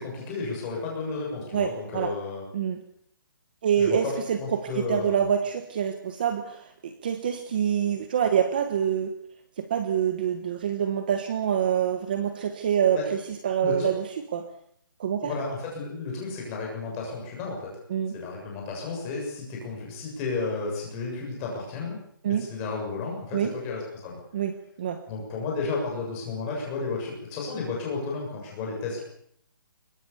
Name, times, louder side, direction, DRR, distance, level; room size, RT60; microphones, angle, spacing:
voice 1, 0.0-2.4 3.8-5.3 12.9-13.0 13.6-13.9 15.2-17.7 18.1-22.0 22.3-24.2 25.1-29.0, left 4 dB, 15° left, -1 dB, 7.2 m, -32 dB
voice 2, 1.5-2.1 2.5-2.8 3.6-9.1 9.6-14.1 14.3-14.4 15.0-15.3 17.9-18.1 22.2-22.4 23.3-23.5 24.3-24.5 24.8-25.0, right 8 dB, 25° right, 8 dB, 1.3 m, -26 dB
25.0 x 22.0 x 7.1 m, 0.68 s
hypercardioid pair, 180°, 12 cm